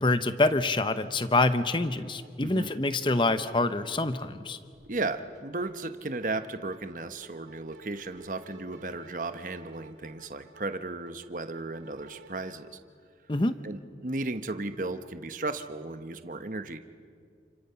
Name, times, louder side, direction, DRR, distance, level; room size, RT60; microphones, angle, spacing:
voice 1, 0.0-4.6 13.3-13.6, left 2 dB, 25° left, 11 dB, 0.8 m, -26 dB
sound 1, 2.2-2.3 2.5-4.4 4.7-5.7 6.1-12.5, right 2 dB, 85° right, 3.2 m, -53 dB
voice 2, 2.4-2.7 4.9-12.8 13.6-16.8, right 2 dB, 45° right, 9 dB, 1.0 m, -35 dB
29.5 x 28.5 x 5.8 m, 2.2 s
head